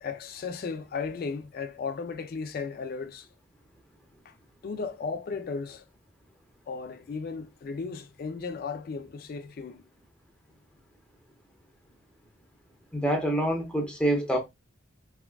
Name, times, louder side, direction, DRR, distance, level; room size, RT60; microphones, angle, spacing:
voice 1, 0.0-3.3 4.3-4.4 4.6-5.9 6.7-9.8, left 5 dB, 50° left, 0.3 m, -35 dB
voice 2, 12.9-14.4, right 1 dB, 5° left, 0.7 m, -26 dB
3.6 x 2.2 x 2.3 m
head